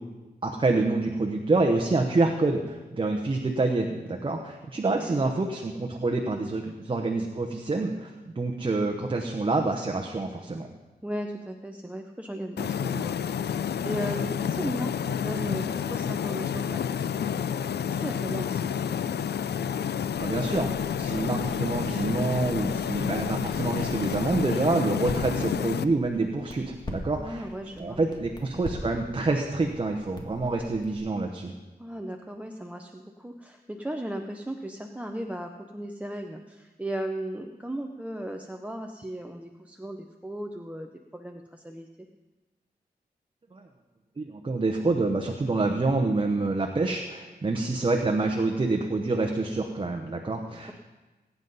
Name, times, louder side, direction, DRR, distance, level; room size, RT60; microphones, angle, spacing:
voice 1, 0.4-8.1 8.4-10.7 20.2-27.5 27.8-31.5 43.5-43.6 44.2-50.7, right 3 dB, 30° right, 3 dB, 0.9 m, -27 dB
voice 2, 11.0-18.9 27.2-28.0 31.8-42.1, right 1 dB, 10° right, 4 dB, 0.6 m, -36 dB
sound 1, 12.6-25.8, left 8 dB, 90° left, 0.4 m, -29 dB
Crackle, 20.1-31.0, left 1 dB, 25° left, 1.7 m, -43 dB
20.5 x 9.3 x 4.0 m, 1.2 s
wide cardioid pair, 145°, 17 cm